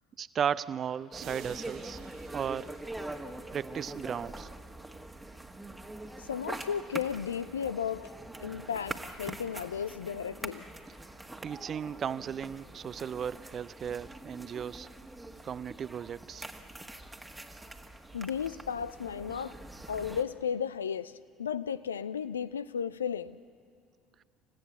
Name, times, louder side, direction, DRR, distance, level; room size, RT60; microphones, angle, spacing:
voice 1, 0.2-2.0 2.3-2.8 3.5-4.5 11.4-14.9 15.4-16.4, right 8 dB, 40° right, 18 dB, 0.5 m, -35 dB
sound 1, 1.1-20.2, right 1 dB, 10° right, 1.5 m, -44 dB
sound 2, 1.2-3.9, right 8 dB, 60° right, 1.9 m, -53 dB
voice 2, 6.2-8.1 8.4-10.6 18.1-19.6 19.9-23.4, left 7 dB, 80° left, 14 dB, 0.4 m, -34 dB
28.5 x 15.5 x 7.3 m, 2.2 s
figure-of-eight pair, 55°, 0 cm